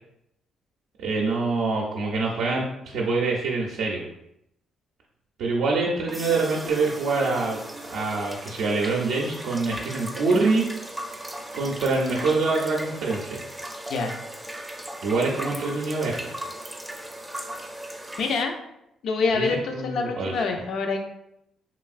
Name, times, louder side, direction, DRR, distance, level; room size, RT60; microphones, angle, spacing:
voice 1, 1.0-4.0 5.4-7.6 7.9-10.7 11.5-13.4 15.0-16.3 19.3-19.5 19.7-20.3, right 3 dB, 80° right, -3 dB, 0.4 m, -25 dB
sound 1, 6.1-18.4, right 1 dB, 5° right, 0.4 m, -37 dB
voice 2, 18.2-18.5 19.0-21.0, left 4 dB, 70° left, 4 dB, 0.4 m, -26 dB
3.0 x 2.5 x 2.4 m, 0.79 s
cardioid pair, 90°, 0 cm